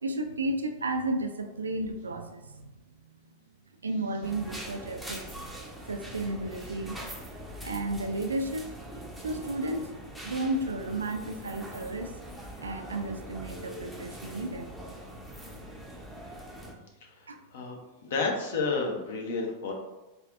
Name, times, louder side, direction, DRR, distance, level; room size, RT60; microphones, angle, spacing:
voice 1, 0.0-2.7 3.0-3.5 3.8-5.2 5.9-7.0 7.6-8.6 9.2-9.9 10.2-12.2 12.6-14.7 17.3-17.4, right 2 dB, 75° right, 6 dB, 0.3 m, -33 dB
sound 1, 4.2-16.7, equal, ahead, 0.6 m, -42 dB
voice 2, 17.5-19.7, left 4 dB, 60° left, 1 dB, 0.7 m, -31 dB
4.1 x 2.5 x 2.5 m, 1.0 s
figure-of-eight pair, 90°, 0 cm